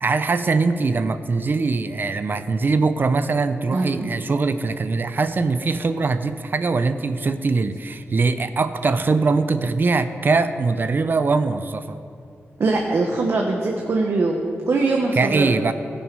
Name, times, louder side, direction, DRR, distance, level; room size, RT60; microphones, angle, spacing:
voice 1, 0.0-12.0 15.1-15.7, right 4 dB, 45° right, 11 dB, 0.4 m, -22 dB
voice 2, 3.7-4.1 12.6-15.7, right 3 dB, 60° right, 0 dB, 1.0 m, -22 dB
16.5 x 6.2 x 5.3 m, 2.5 s
wide cardioid pair, 125°, 5 cm